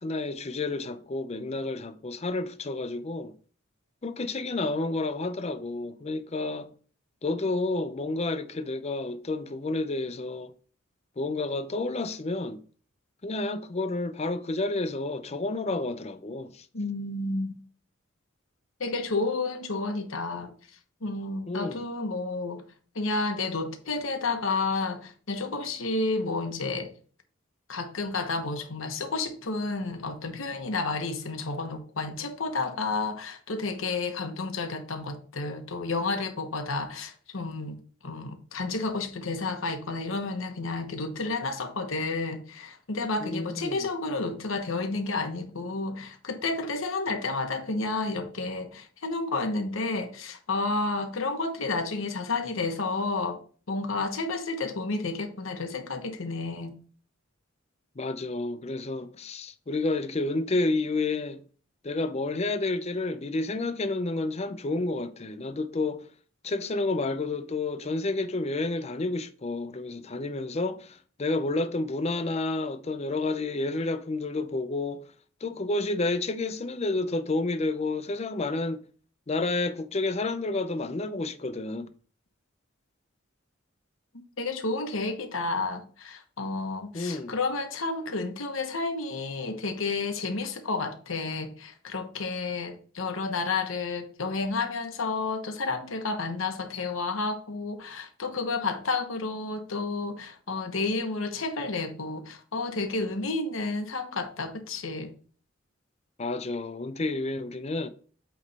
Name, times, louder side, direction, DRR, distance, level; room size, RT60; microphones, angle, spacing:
voice 1, 0.0-3.3 4.0-6.7 7.2-10.5 11.2-12.6 13.2-16.7 21.5-21.8 43.2-43.9 58.0-61.4 61.8-66.1 66.4-75.0 75.4-78.8 79.3-81.9 86.9-87.4 106.2-107.9, left 2 dB, 30° left, 0.5 m, -30 dB
voice 2, 16.7-17.6 18.8-20.5 21.0-22.6 22.9-26.9 27.7-37.8 38.0-53.4 53.7-56.8 84.4-105.1, left 3 dB, 90° left, 1.1 m, -31 dB
8.3 x 3.2 x 4.1 m
head